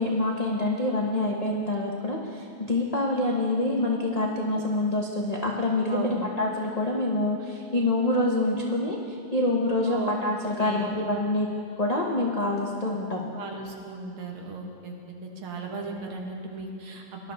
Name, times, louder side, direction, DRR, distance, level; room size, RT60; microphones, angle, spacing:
voice 1, 0.0-11.5 11.8-13.3, left 2 dB, 55° left, -3 dB, 0.4 m, -26 dB
voice 2, 5.9-6.3 9.9-10.2 10.6-11.1 13.3-14.9 15.2-17.3, right 4 dB, 75° right, 1 dB, 2.2 m, -36 dB
18.5 x 11.5 x 3.4 m, 2.7 s
omnidirectional pair, 2.4 m